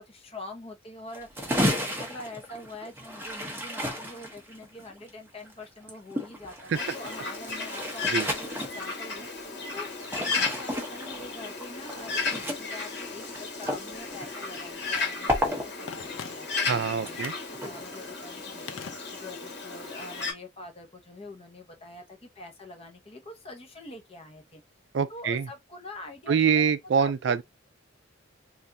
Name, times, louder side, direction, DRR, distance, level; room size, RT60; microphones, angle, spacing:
voice 1, 0.0-9.3 9.7-24.6 25.1-27.4, left 2 dB, 30° left, 0.8 m, -45 dB
sound 1, 1.1-12.7 13.0-15.0 15.3-15.7 16.0-16.5 16.8-17.1 17.5-18.0, equal, 10° right, 0.8 m, -33 dB
Bird, 6.7-20.3, left 4 dB, 60° left, 1.3 m, -34 dB
Telephone, 15.9-16.7 17.1-17.6 18.7-19.5 19.8-19.9, left 7 dB, 85° left, 0.5 m, -42 dB
voice 2, 16.7-17.3 24.9-25.5 26.3-27.4, right 6 dB, 60° right, 0.4 m, -25 dB
3.4 x 2.6 x 2.6 m
head